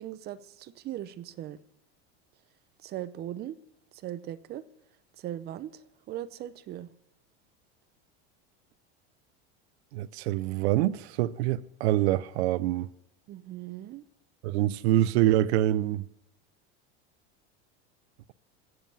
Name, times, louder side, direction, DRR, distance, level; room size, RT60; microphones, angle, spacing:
voice 1, 0.0-1.6 2.8-3.6 4.0-4.6 5.2-5.7 6.1-6.9 13.3-14.0, right 12 dB, 30° right, 0.6 m, -38 dB
voice 2, 9.9-12.9 14.4-16.0, right 14 dB, 85° right, 0.6 m, -25 dB
14.5 x 7.7 x 7.0 m
supercardioid pair, 140°, 32 cm